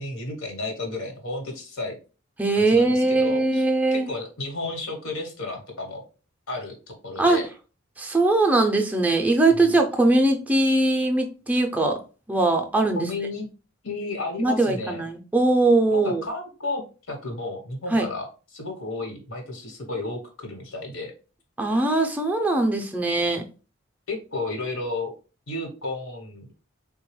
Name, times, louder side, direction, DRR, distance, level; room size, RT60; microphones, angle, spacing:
voice 1, 0.0-2.0 2.5-3.6 3.9-6.0 6.5-7.4 13.0-13.5 13.8-15.0 15.9-16.8 17.1-21.1 24.1-25.1 25.5-26.5, left 2 dB, 90° left, 2 dB, 1.1 m, -32 dB
voice 2, 2.4-4.1 7.2-7.4 8.0-12.0 12.3-13.1 14.4-16.2 17.9-18.1 21.6-23.4, right 2 dB, 10° right, 3 dB, 0.4 m, -21 dB
3.7 x 2.2 x 3.0 m, 0.34 s
head